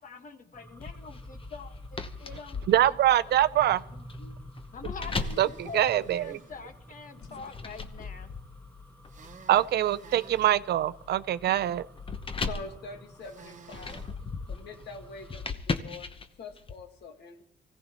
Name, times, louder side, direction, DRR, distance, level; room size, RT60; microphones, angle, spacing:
voice 1, 0.0-3.0 3.3-4.4 4.7-8.3, left 5 dB, 50° left, 7 dB, 1.5 m, -45 dB
sound 1, 0.5-15.5, equal, 10° left, 1.4 m, -50 dB
sound 2, 0.8-6.6 7.2-16.7, left 4 dB, 30° left, 0.9 m, -38 dB
voice 2, 2.7-3.8 5.4-5.5 5.7-6.4 9.5-11.9, right 12 dB, 70° right, 15 dB, 0.5 m, -24 dB
sound 3, 5.1-6.5 9.1-10.6 13.2-14.1, right 6 dB, 45° right, 0.9 m, -52 dB
voice 3, 12.4-14.0 14.5-16.1 16.4-17.4, left 3 dB, 75° left, 5 dB, 1.7 m, -44 dB
24.0 x 16.0 x 3.0 m, 0.70 s
cardioid pair, 110°, 17 cm